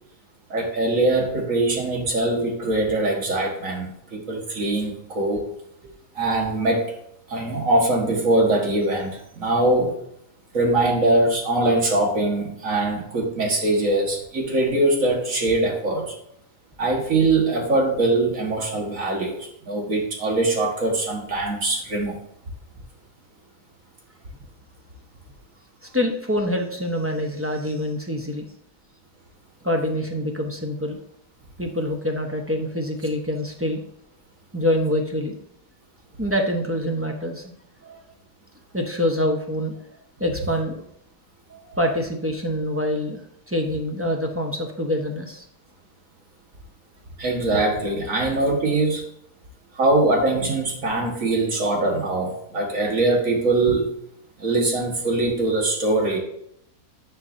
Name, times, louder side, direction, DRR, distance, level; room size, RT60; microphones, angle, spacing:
voice 1, 0.5-5.5 6.2-6.9 7.3-10.0 10.5-16.2 16.8-22.2 47.2-49.0 49.7-53.9 54.4-56.2, right 2 dB, 55° right, 1 dB, 2.0 m, -22 dB
voice 2, 25.8-28.5 29.6-31.0 31.6-33.8 34.5-35.4 36.2-37.5 37.8-38.0 38.7-39.8 40.2-40.8 41.5-43.2 43.5-45.4, left 1 dB, 10° right, 1 dB, 0.7 m, -25 dB
10.0 x 5.7 x 2.7 m, 0.72 s
omnidirectional pair, 1.7 m